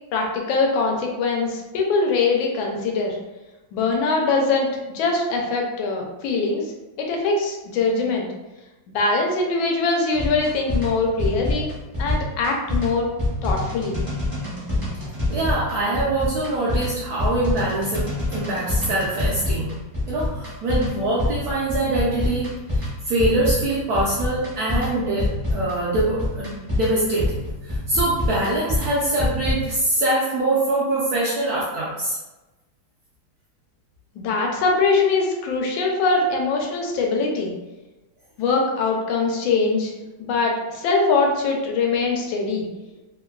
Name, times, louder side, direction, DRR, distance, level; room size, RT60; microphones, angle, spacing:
voice 1, 0.1-3.2 3.7-6.7 7.0-8.3 8.9-11.7 12.0-13.1 13.4-14.0 34.1-37.5 38.4-39.9 40.2-42.7, left 3 dB, 85° left, 1 dB, 1.3 m, -22 dB
sound 1, 10.1-29.8, left 1 dB, 45° right, 0.4 m, -27 dB
voice 2, 15.3-19.7 20.1-27.4 27.7-32.2, right 2 dB, 75° right, -6 dB, 0.9 m, -24 dB
3.3 x 2.2 x 2.3 m, 1.1 s
omnidirectional pair, 2.1 m